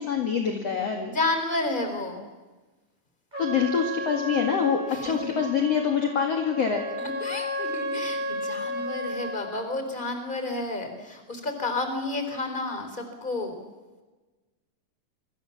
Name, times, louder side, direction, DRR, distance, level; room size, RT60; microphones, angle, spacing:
voice 1, 0.0-1.1 3.4-6.9, left 7 dB, 45° left, 3 dB, 2.8 m, -25 dB
voice 2, 1.1-2.2 4.9-5.4 7.0-13.6, left 2 dB, 10° left, 6 dB, 4.0 m, -31 dB
Trumpet, 3.3-9.5, left 1 dB, 10° right, 7.4 m, -33 dB
27.0 x 25.5 x 7.3 m, 1.2 s
omnidirectional pair, 4.4 m